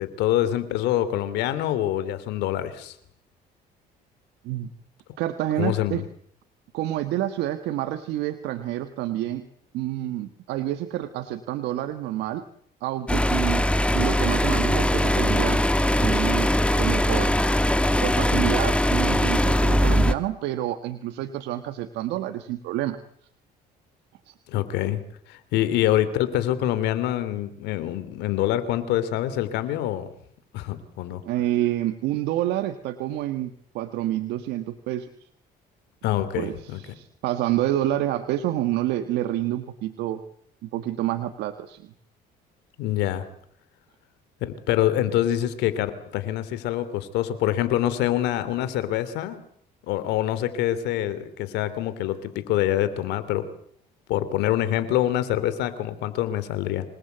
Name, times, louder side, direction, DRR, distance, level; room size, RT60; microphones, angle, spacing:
voice 1, 0.0-2.9 5.6-6.0 24.5-25.0 25.3-30.1 30.5-31.2 36.0-36.8 42.8-43.2 44.4-49.4 49.9-53.4 54.1-56.8, left 12 dB, 90° left, 13 dB, 3.0 m, -25 dB
voice 2, 5.2-6.0 6.7-9.5 9.7-12.4 12.8-15.6 15.9-17.4 18.0-23.0 24.3-24.4 31.2-35.3 36.4-40.2 40.6-41.9, right 13 dB, 85° right, 9 dB, 1.6 m, -28 dB
sound 1, 13.1-20.1, equal, 5° left, 1.5 m, -21 dB
27.0 x 20.0 x 8.1 m, 0.65 s
cardioid pair, 110°, 17 cm